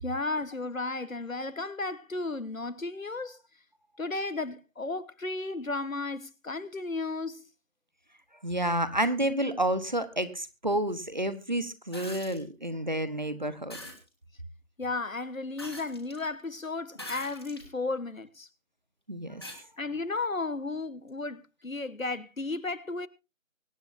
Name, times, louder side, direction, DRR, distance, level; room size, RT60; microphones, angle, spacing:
voice 1, 0.0-3.4 4.0-7.5 14.8-18.5 19.8-23.1, left 3 dB, 80° left, 1.4 m, -34 dB
voice 2, 8.4-13.8 19.1-19.4, right 1 dB, 35° right, 1.2 m, -30 dB
sound 1, 11.9-12.4 13.7-14.0 15.6-16.2 16.9-17.7 18.3-18.4 19.4-19.6 21.1-21.2, left 1 dB, 20° left, 1.7 m, -43 dB
24.0 x 8.9 x 2.7 m
figure-of-eight pair, 170°, 40 cm